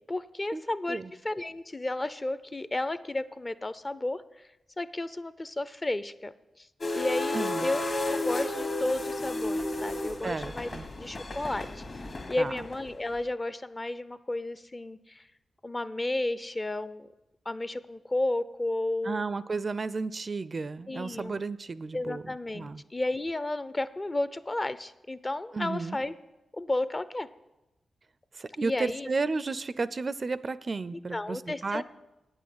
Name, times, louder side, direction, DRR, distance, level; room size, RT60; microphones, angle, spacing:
voice 1, 0.1-1.0 1.2-4.2 4.8-6.3 6.6-6.7 6.9-7.8 8.1-10.7 10.9-11.8 12.3-15.2 15.6-17.1 17.5-19.2 20.9-21.4 21.9-26.1 26.5-27.3 28.6-29.1 31.1-31.8, left 2 dB, 30° left, 15 dB, 0.5 m, -32 dB
sound 1, 6.8-13.1, left 2 dB, 50° left, 1.7 m, -33 dB
voice 2, 7.3-7.7 10.2-10.9 12.4-12.6 19.0-22.8 25.5-26.0 28.4-31.8, right 4 dB, 45° right, 17 dB, 0.4 m, -33 dB
8.8 x 6.3 x 8.5 m, 0.99 s
cardioid pair, 55°, 0 cm